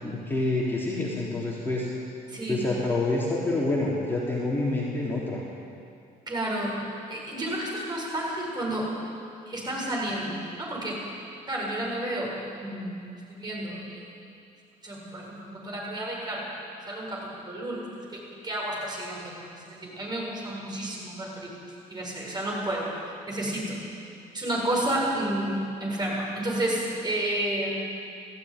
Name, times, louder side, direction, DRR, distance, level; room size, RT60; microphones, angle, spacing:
voice 1, 0.0-1.9 2.5-5.4, left 2 dB, 10° left, -5 dB, 3.6 m, -27 dB
voice 2, 2.3-2.6 6.3-6.8 7.1-8.9 9.5-11.0 11.5-14.1 14.8-16.4 16.9-21.5 21.9-22.9 23.3-23.8 24.3-25.5 25.8-27.8, right 1 dB, 25° right, -3 dB, 7.3 m, -31 dB
19.0 x 15.5 x 9.8 m, 2.5 s
cardioid pair, 110°, 17 cm